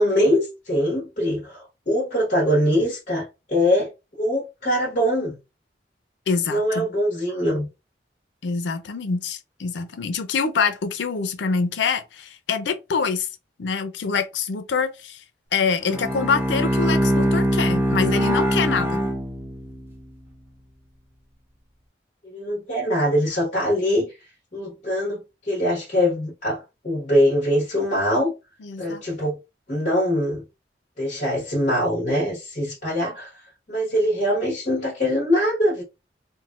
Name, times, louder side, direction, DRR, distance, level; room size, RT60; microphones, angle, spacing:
voice 1, 0.0-3.9 4.2-5.4 6.5-7.7 22.2-24.2 24.5-28.3 28.8-29.4 29.7-30.4 31.0-33.3 33.7-35.8, equal, 45° left, 1.2 m, -23 dB
voice 2, 6.3-6.9 8.4-13.3 13.6-15.2 15.5-19.0 28.6-29.0, left 5 dB, 85° left, 0.5 m, -25 dB
Bowed string instrument, 15.8-19.9, equal, 15° right, 0.7 m, -22 dB
3.7 x 2.1 x 2.4 m
head